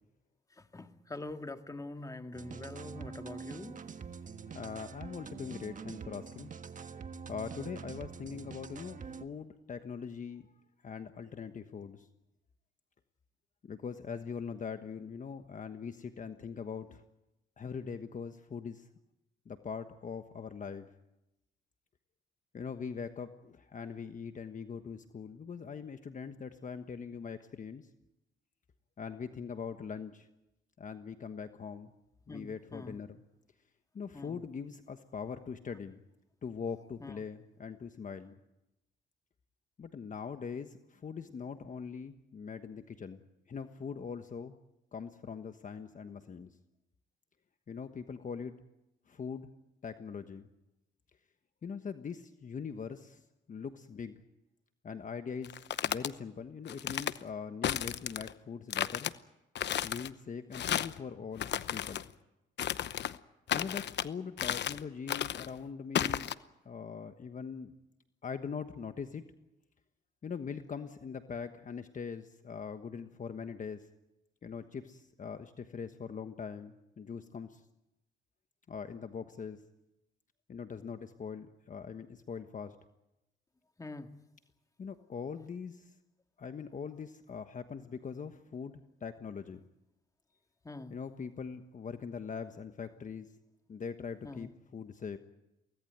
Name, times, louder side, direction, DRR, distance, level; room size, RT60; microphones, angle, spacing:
voice 1, 0.6-3.8 32.3-33.0 34.1-34.4 37.0-37.2 83.8-84.1 90.6-91.0 94.2-94.5, left 2 dB, 15° left, 6 dB, 2.0 m, -44 dB
sound 1, 2.3-9.2, right 6 dB, 40° right, 1.5 m, -45 dB
voice 2, 4.5-6.5 7.3-10.5 10.8-12.1 13.6-17.0 17.6-18.9 19.4-20.9 22.5-27.9 29.0-30.3 30.8-31.9 32.3-33.2 33.9-36.0 36.4-38.4 39.8-43.2 43.5-44.5 44.9-46.6 47.7-48.5 49.1-49.5 49.8-50.5 51.6-54.2 54.8-59.1 59.8-62.0 63.5-66.3 66.6-67.7 68.2-69.2 70.2-73.9 74.4-77.6 78.7-79.6 80.5-82.8 84.8-85.9 86.4-89.6 90.9-93.3 93.7-95.2, left 6 dB, 40° left, 8 dB, 1.3 m, -42 dB
sound 2, 55.4-56.1 56.7-57.2 57.6-58.3 58.7-59.1 59.6-60.1 60.5-61.0 61.4-62.0 62.6-63.2 63.5-64.1 64.4-64.8 65.1-65.5 66.0-66.3, left 10 dB, 65° left, 0.9 m, -33 dB
24.5 x 17.5 x 9.3 m, 0.93 s
cardioid pair, 90°, 20 cm